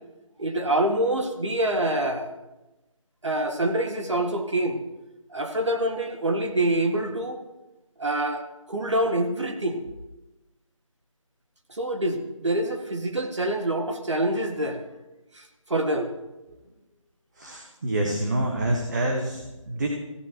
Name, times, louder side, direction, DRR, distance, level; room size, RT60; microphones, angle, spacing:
voice 1, 0.4-2.3 3.2-4.8 5.3-7.4 8.0-8.4 8.7-9.8 11.7-14.8 15.7-16.1, right 1 dB, 60° right, 4 dB, 1.9 m, -26 dB
voice 2, 17.4-19.9, right 1 dB, 35° right, 0 dB, 1.4 m, -27 dB
22.5 x 14.5 x 3.0 m, 1.0 s
figure-of-eight pair, 160°, 18 cm